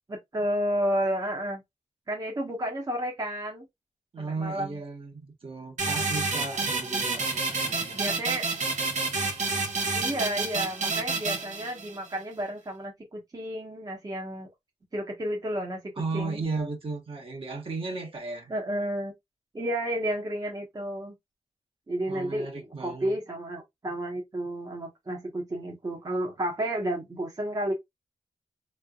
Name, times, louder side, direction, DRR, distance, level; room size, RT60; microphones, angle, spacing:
voice 1, 0.1-1.6 2.1-3.7 4.2-4.8 7.9-8.5 9.9-14.5 14.9-16.4 18.5-19.1 19.5-21.1 21.9-27.7, right 1 dB, 30° right, 1.1 m, -31 dB
voice 2, 4.1-8.1 16.0-18.5 22.1-23.1, right 3 dB, 50° right, 1.3 m, -35 dB
sound 1, 5.8-12.1, right 3 dB, 90° right, 1.1 m, -29 dB
3.5 x 3.3 x 2.3 m
wide cardioid pair, 100°, 12 cm